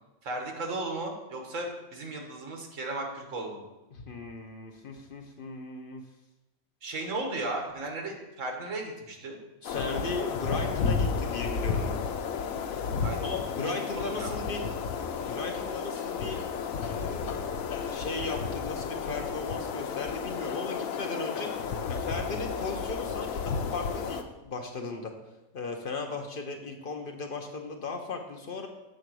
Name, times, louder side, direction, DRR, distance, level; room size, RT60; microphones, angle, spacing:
voice 1, 0.2-3.6 6.8-9.4 13.0-13.4 13.6-14.4, right 2 dB, 65° right, 2 dB, 1.5 m, -35 dB
voice 2, 3.9-6.0 9.6-12.0 13.2-14.6 15.2-16.4 16.8-17.6 17.9-25.1 25.5-28.7, left 3 dB, 50° left, 3 dB, 0.8 m, -37 dB
sound 1, 9.6-24.2, left 6 dB, 75° left, 1.0 m, -32 dB
7.5 x 3.9 x 6.1 m, 1.0 s
omnidirectional pair, 1.5 m